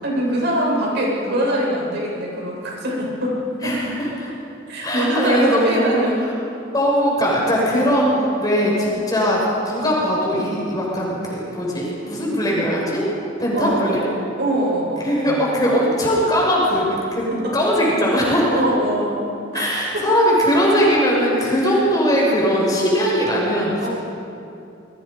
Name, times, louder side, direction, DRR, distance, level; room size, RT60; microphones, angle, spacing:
voice 1, 0.0-3.3 3.6-3.7 4.7-6.2 13.5-14.1 14.4-15.4 17.4-17.5 18.5-20.1 21.7-21.8 23.8-23.9, right 1 dB, 60° right, -4 dB, 8.0 m, -23 dB
voice 2, 3.6-4.3 4.8-6.0 6.7-13.1 13.4-14.0 15.0-18.6 19.5-23.9, equal, 20° left, -4 dB, 6.8 m, -20 dB
29.0 x 22.5 x 5.5 m, 2.7 s
head